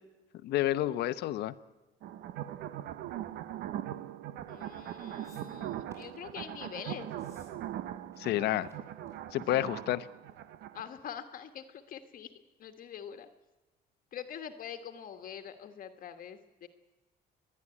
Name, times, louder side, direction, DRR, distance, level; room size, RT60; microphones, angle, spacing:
voice 1, 0.4-1.5 8.2-8.7 9.3-10.1, left 14 dB, 75° left, 13 dB, 0.8 m, -29 dB
sound 1, 2.0-10.9, right 11 dB, 80° right, 0.9 m, -41 dB
voice 2, 4.5-7.1 9.7-9.8 10.7-12.3 12.6-13.3 14.1-16.7, left 8 dB, 55° left, 7 dB, 1.4 m, -44 dB
sound 2, 5.2-6.2 7.1-7.5 7.8-8.3 8.6-8.7 9.0-9.4 10.3-10.4, right 1 dB, 15° right, 6.6 m, -62 dB
29.0 x 11.0 x 9.7 m, 1.1 s
cardioid pair, 110°, 17 cm